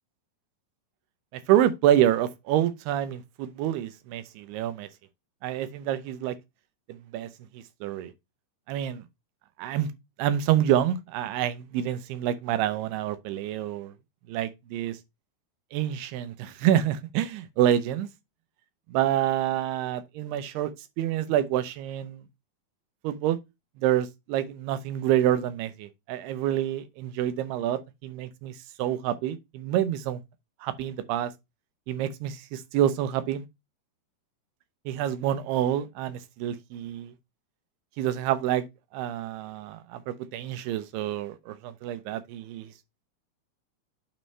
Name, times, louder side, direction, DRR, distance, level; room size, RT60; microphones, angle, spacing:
voice 1, 1.3-4.9 5.4-6.3 7.1-7.3 7.8-8.1 8.7-9.0 9.6-9.9 10.2-13.9 14.3-15.0 15.7-18.1 18.9-20.7 21.0-22.2 23.0-23.4 23.8-28.5 28.8-30.2 30.6-31.3 31.9-33.4 34.9-37.1 38.0-38.6 38.9-42.7, right 11 dB, 85° right, 2.8 m, -27 dB
8.9 x 3.1 x 5.3 m
omnidirectional pair, 4.5 m